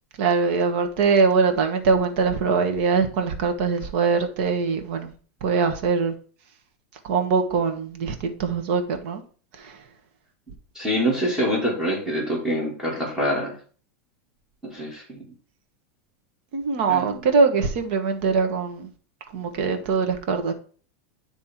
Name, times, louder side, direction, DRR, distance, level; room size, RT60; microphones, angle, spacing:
voice 1, 0.2-5.1 5.4-6.1 7.1-9.2 16.5-18.9 19.3-20.5, right 5 dB, 55° right, 6 dB, 1.5 m, -22 dB
voice 2, 10.8-13.5 14.6-15.2 16.9-17.2, equal, 5° right, -2 dB, 2.2 m, -25 dB
9.6 x 3.4 x 4.4 m, 0.41 s
supercardioid pair, 150°, 7 cm